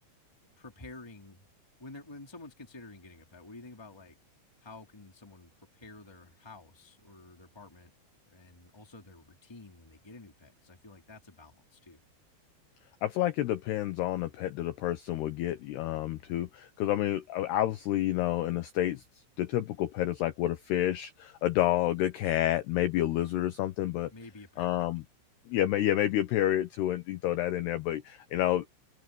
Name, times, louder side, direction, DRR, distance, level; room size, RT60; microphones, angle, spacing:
voice 1, 0.6-1.5 1.8-4.2 4.6-7.9 8.2-12.1 24.1-24.9, left 2 dB, 5° left, 2.1 m, -50 dB
voice 2, 13.0-19.0 19.4-24.1 24.6-25.0 25.5-28.6, left 13 dB, 80° left, 2.4 m, -29 dB
open air
omnidirectional pair, 6.0 m